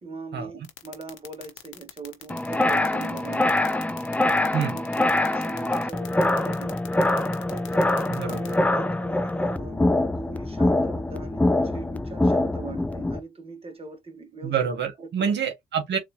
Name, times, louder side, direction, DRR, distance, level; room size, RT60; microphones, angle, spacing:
voice 1, 0.0-3.8 4.6-6.8 7.5-9.9 10.2-14.5 15.0-15.3, right 3 dB, 30° right, 1.3 m, -41 dB
sound 1, 0.6-8.5, left 13 dB, 90° left, 0.9 m, -42 dB
sound 2, 2.3-13.2, left 1 dB, 5° left, 0.4 m, -24 dB
voice 2, 8.1-8.5 14.4-16.0, right 7 dB, 60° right, 1.3 m, -27 dB
4.0 x 2.6 x 2.8 m
cardioid pair, 90°, 20 cm